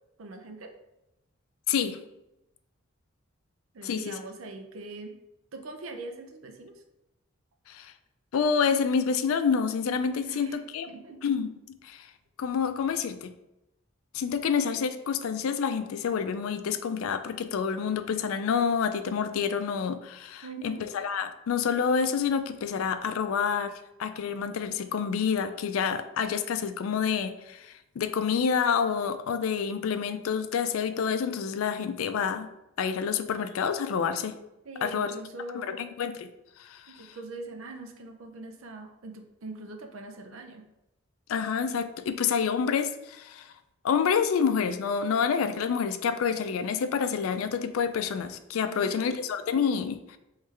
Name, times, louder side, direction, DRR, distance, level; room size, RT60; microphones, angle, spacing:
voice 1, 0.2-0.7 3.7-5.1 5.5-6.8 10.2-11.2 20.4-20.9 34.6-35.8 36.9-40.7 48.7-49.2, right 2 dB, 75° right, 4 dB, 0.5 m, -42 dB
voice 2, 1.7-2.0 3.8-4.2 7.7-7.9 8.3-10.9 11.2-11.5 11.8-12.1 12.4-13.3 14.1-23.7 24.0-32.5 32.8-34.4 34.8-35.1 35.5-36.3 36.6-37.2 41.3-43.5 43.8-50.2, left 6 dB, 85° left, 10 dB, 0.3 m, -28 dB
3.2 x 3.1 x 3.6 m, 0.90 s
head